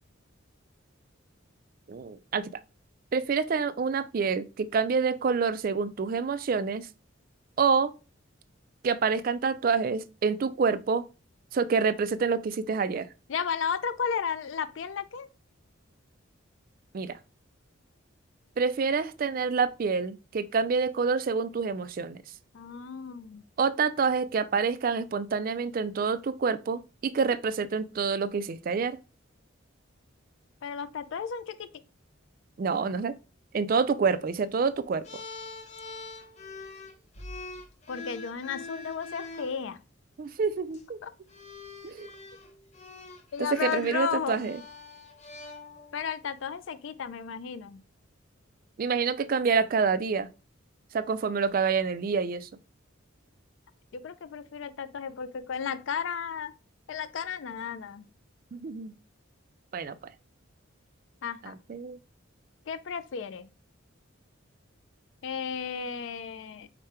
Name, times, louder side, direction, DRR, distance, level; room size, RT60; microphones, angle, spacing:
voice 1, 1.9-2.5 3.1-6.9 7.6-7.9 8.8-11.1 11.5-13.1 16.9-17.2 18.6-22.2 23.6-29.0 32.6-33.1 33.5-35.0 40.2-41.0 41.8-42.1 43.5-44.6 48.8-50.3 50.9-52.5 58.5-58.9 59.7-60.0 61.4-62.0, right 5 dB, 45° right, 0.3 m, -27 dB
voice 2, 13.3-15.3 22.5-23.4 30.6-31.7 37.9-39.8 41.0-41.1 43.3-44.4 45.9-47.8 53.9-56.5 56.9-58.1 61.2-61.5 62.7-63.5 65.2-66.7, left 6 dB, 70° left, 0.4 m, -34 dB
sound 1, 35.0-39.6 40.6-40.8 41.3-46.1, left 3 dB, 35° left, 0.7 m, -44 dB
5.0 x 2.2 x 4.3 m
head